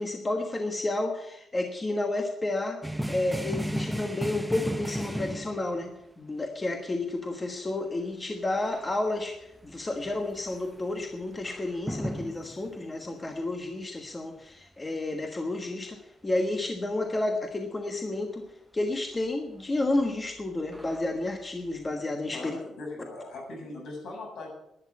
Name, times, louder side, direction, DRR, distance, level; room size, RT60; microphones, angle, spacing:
voice 1, 0.0-2.8 3.1-5.9 6.2-9.4 9.6-16.0 16.2-18.4 18.7-22.6, left 2 dB, 15° left, 4 dB, 1.3 m, -31 dB
sound 1, 2.8-5.9 8.6-9.2 9.5-12.8 20.0-21.3 21.9-22.0, equal, 5° right, 0.5 m, -35 dB
voice 2, 22.3-24.5, left 2 dB, 65° left, -1 dB, 7.8 m, -40 dB
11.5 x 10.5 x 8.5 m, 0.83 s
wide cardioid pair, 170°, 0 cm